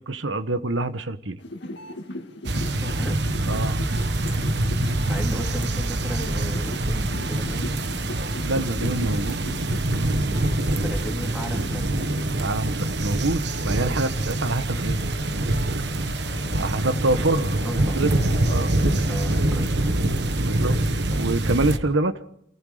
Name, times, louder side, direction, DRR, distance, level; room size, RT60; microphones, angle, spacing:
voice 1, 0.0-1.4 3.5-3.8 8.4-9.4 12.4-15.0 16.6-18.7 20.4-20.8 21.1-22.2, right 2 dB, 85° right, 1.2 m, -26 dB
sound 1, 1.4-12.7 13.0-19.4, left 1 dB, 65° left, 2.0 m, -39 dB
sound 2, 2.4-21.8, right 1 dB, 60° right, 1.2 m, -25 dB
voice 2, 2.7-3.2 5.0-7.7 10.5-11.9 16.4-17.2 17.6-18.0 19.0-20.0 21.1-21.3, equal, 5° right, 3.2 m, -36 dB
28.5 x 19.0 x 5.0 m
head